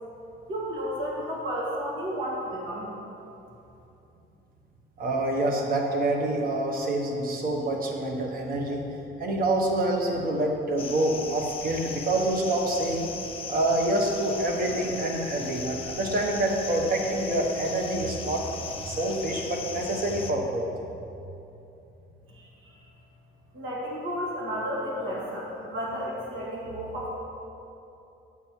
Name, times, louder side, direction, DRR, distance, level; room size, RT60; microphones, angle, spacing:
voice 1, 0.5-2.9 22.6-22.7 23.5-27.1, equal, 80° right, -4 dB, 1.9 m, -32 dB
voice 2, 5.0-8.8 9.2-13.1 13.5-18.5 18.8-20.6, right 1 dB, 45° right, 1 dB, 1.2 m, -27 dB
sound 1, 10.8-20.3, left 5 dB, 25° left, 0.5 m, -38 dB
8.5 x 7.5 x 4.5 m, 2.8 s
cardioid pair, 155°, 20 cm